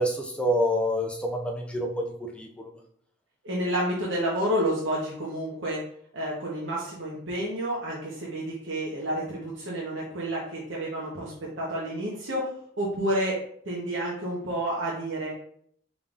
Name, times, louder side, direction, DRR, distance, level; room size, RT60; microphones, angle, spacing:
voice 1, 0.0-2.0 2.3-2.7, equal, 5° left, 1 dB, 0.4 m, -27 dB
voice 2, 3.4-5.8 6.1-12.5 12.8-13.4 13.6-15.3, right 1 dB, 75° right, -5 dB, 1.0 m, -30 dB
5.2 x 3.8 x 2.4 m, 0.64 s
head